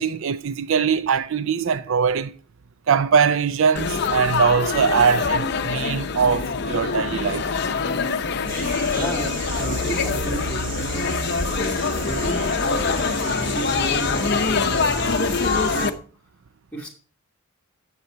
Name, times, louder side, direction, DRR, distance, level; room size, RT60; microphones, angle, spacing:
voice 1, 0.0-2.3 2.9-7.4, right 6 dB, 60° right, 0.4 m, -21 dB
Laughter / Chatter / Crowd, 3.8-15.9, left 4 dB, 50° left, 0.7 m, -24 dB
sound 1, 8.5-15.9, right 1 dB, 40° right, 1.3 m, -32 dB
voice 2, 8.9-11.2 11.6-13.0 13.2-16.0 16.7-16.9, right 2 dB, 5° left, 2.3 m, -33 dB
9.3 x 7.4 x 4.5 m
head